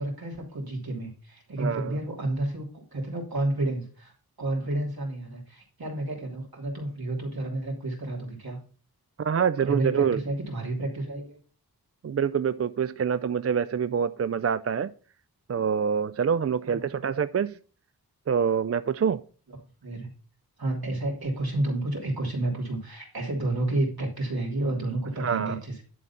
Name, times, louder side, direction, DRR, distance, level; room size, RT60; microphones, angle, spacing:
voice 1, 0.0-4.1 4.4-8.6 9.6-11.4 16.7-16.9 19.5-19.6 19.8-20.1 20.6-25.8, right 2 dB, 70° right, 3.0 m, -30 dB
voice 2, 1.6-2.0 9.2-10.2 12.0-14.9 15.5-17.6 18.3-19.2 25.2-25.6, right 7 dB, 40° right, 0.4 m, -26 dB
11.0 x 3.9 x 5.6 m
wide cardioid pair, 55°, 37 cm